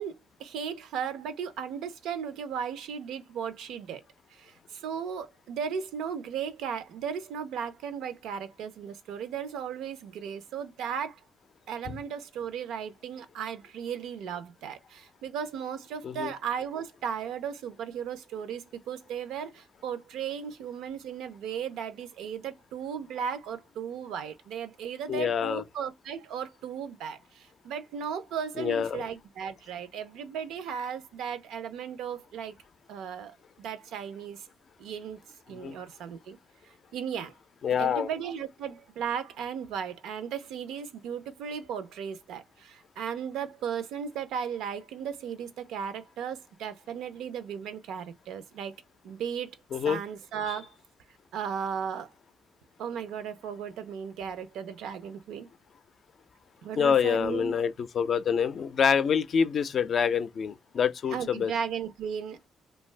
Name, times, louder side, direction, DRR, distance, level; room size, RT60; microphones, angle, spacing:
voice 1, 0.0-4.0 4.3-11.2 11.7-32.6 32.9-34.4 34.8-35.2 35.5-36.4 36.9-37.3 37.8-48.7 49.0-49.6 49.8-50.7 51.3-52.1 52.8-55.5 56.6-57.6 61.1-62.5, right 7 dB, 85° right, 0.5 m, -36 dB
voice 2, 25.1-25.6 28.6-29.0 35.5-35.8 37.6-38.1 49.7-50.0 56.8-61.5, left 7 dB, 55° left, 0.4 m, -26 dB
2.6 x 2.2 x 3.2 m
cardioid pair, 90°, 0 cm